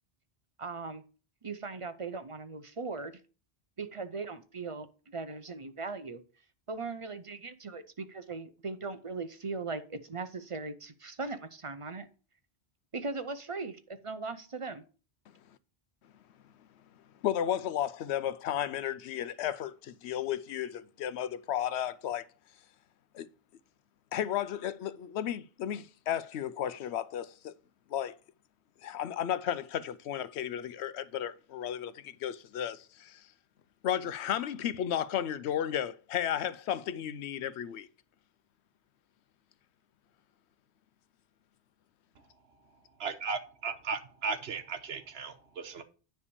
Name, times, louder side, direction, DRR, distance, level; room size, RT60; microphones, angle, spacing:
voice 1, 0.6-1.0 1.4-3.1 3.8-6.2 6.7-12.1 12.9-14.8, right 4 dB, 35° right, 0.6 m, -39 dB
voice 2, 17.2-22.2 23.1-23.3 24.1-27.5 27.9-28.2 28.8-33.2 33.8-37.9, left 10 dB, 80° left, 0.9 m, -33 dB
voice 3, 43.0-45.8, right 5 dB, 70° right, 1.1 m, -36 dB
9.7 x 3.4 x 6.8 m
omnidirectional pair, 1.1 m